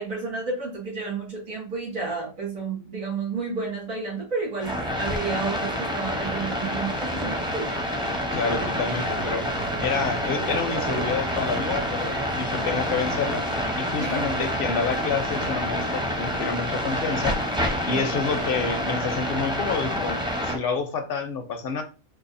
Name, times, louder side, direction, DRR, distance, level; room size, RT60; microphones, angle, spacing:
voice 1, 0.0-7.7 14.0-14.2 17.9-18.1, right 4 dB, 80° right, 2.4 m, -31 dB
sound 1, 4.6-20.6, equal, 5° right, 0.4 m, -28 dB
voice 2, 8.3-9.4 9.8-13.4 13.8-17.4 17.8-21.8, left 5 dB, 55° left, 0.7 m, -28 dB
sound 2, 8.9-15.8, right 6 dB, 65° right, 0.8 m, -39 dB
4.8 x 2.3 x 2.6 m
omnidirectional pair, 1.4 m